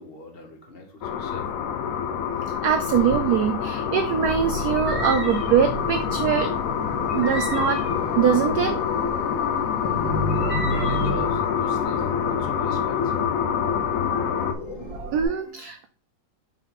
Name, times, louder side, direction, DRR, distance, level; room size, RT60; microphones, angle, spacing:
voice 1, 0.0-1.6 10.6-13.4, left 2 dB, 35° left, 3 dB, 1.1 m, -41 dB
sound 1, 1.0-14.5, left 8 dB, 85° left, 0.7 m, -26 dB
voice 2, 2.6-6.5 7.1-7.8 8.2-8.8 13.8-14.4 14.8-15.9, right 8 dB, 80° right, 8 dB, 0.8 m, -23 dB
sound 2, 2.9-15.3, left 1 dB, 65° left, 2.1 m, -33 dB
sound 3, 4.8-5.7 7.1-8.2 10.3-11.1, right 2 dB, 5° right, 1.7 m, -35 dB
5.6 x 4.5 x 3.8 m, 0.41 s
omnidirectional pair, 2.2 m